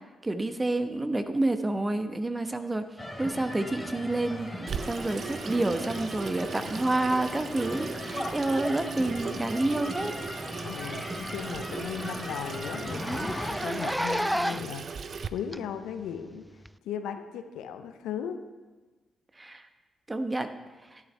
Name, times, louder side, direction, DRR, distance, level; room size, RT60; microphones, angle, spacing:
voice 1, 0.2-2.9 3.2-4.6 4.9-10.1 19.4-19.7 20.1-20.5 20.9-21.0, right 2 dB, 25° right, 8 dB, 1.1 m, -29 dB
sound 1, 3.0-13.6, left 1 dB, 15° left, 3.6 m, -38 dB
Water tap faucet / Sink (filling or washing), 4.7-15.3, right 5 dB, 55° right, 0.5 m, -38 dB
Zipper (clothing), 10.2-10.4 10.7-10.8 11.2-11.3 11.7-11.8 12.0-12.2 12.8-14.8 15.5-15.6 16.6-16.7, equal, ahead, 0.3 m, -31 dB
voice 2, 10.6-14.9 15.3-16.4 16.8-18.4, left 8 dB, 75° left, 8 dB, 0.7 m, -37 dB
13.0 x 11.0 x 3.4 m, 1.3 s
hypercardioid pair, 40°, 0 cm